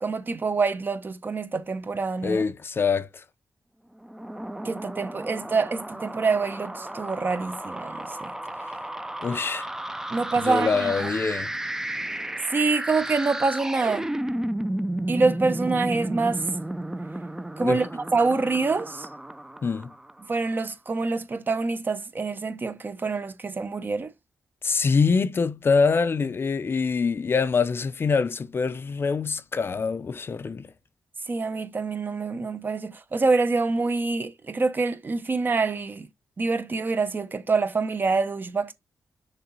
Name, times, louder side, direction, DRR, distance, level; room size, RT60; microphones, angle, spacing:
voice 1, 0.0-2.4 4.6-8.3 10.1-11.2 12.5-14.1 15.1-16.5 17.6-19.1 20.3-24.1 31.3-36.1 36.4-38.7, right 4 dB, 35° right, 0.9 m, -26 dB
voice 2, 2.2-3.2 9.2-9.7 10.4-11.5 17.6-17.8 19.6-19.9 24.6-30.7, left 5 dB, 40° left, 0.5 m, -24 dB
sound 1, 4.0-20.4, right 1 dB, 10° right, 0.5 m, -33 dB
6.6 x 3.8 x 4.0 m
wide cardioid pair, 115°, 6 cm